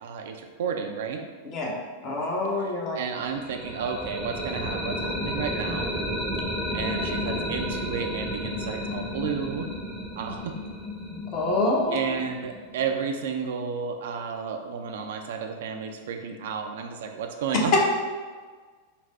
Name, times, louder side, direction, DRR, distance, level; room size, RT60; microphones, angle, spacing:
voice 1, 0.0-1.3 2.6-5.9 6.7-9.7 10.2-10.6 11.9-17.8, right 6 dB, 55° right, 4 dB, 0.3 m, -32 dB
voice 2, 1.4-3.0 11.1-12.0 17.7-17.8, left 2 dB, 40° left, -1 dB, 0.8 m, -26 dB
sound 1, 3.2-13.0, equal, 5° left, 0.7 m, -32 dB
4.1 x 2.0 x 4.4 m, 1.5 s
figure-of-eight pair, 90°, 0 cm